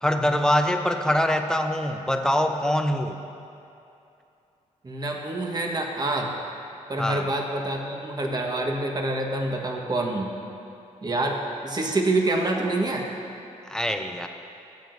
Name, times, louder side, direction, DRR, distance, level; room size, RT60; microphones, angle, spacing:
voice 1, 0.0-3.2 7.0-7.3 13.7-14.3, left 1 dB, 5° left, 5 dB, 0.7 m, -24 dB
voice 2, 4.8-6.3 6.9-10.3 11.0-13.1, right 2 dB, 30° right, 1 dB, 1.3 m, -26 dB
15.0 x 7.7 x 2.6 m, 2.7 s
cardioid pair, 75°, 13 cm